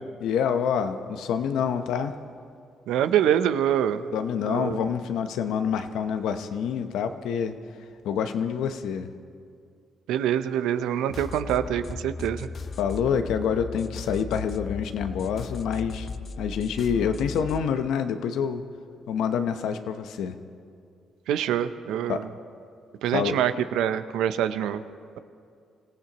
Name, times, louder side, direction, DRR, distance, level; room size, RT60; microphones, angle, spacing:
voice 1, 0.0-2.1 4.1-7.6 8.0-9.1 12.8-16.1 16.4-18.6 19.1-20.4 22.1-22.3 23.1-23.4, left 7 dB, 85° left, 8 dB, 0.8 m, -27 dB
voice 2, 2.9-4.1 4.4-4.8 10.1-12.5 21.3-22.2 23.0-24.8, right 10 dB, 90° right, 11 dB, 0.6 m, -25 dB
sound 1, 11.1-17.7, left 5 dB, 45° left, 0.6 m, -37 dB
25.5 x 15.5 x 3.0 m, 2.3 s
cardioid pair, 90°, 0 cm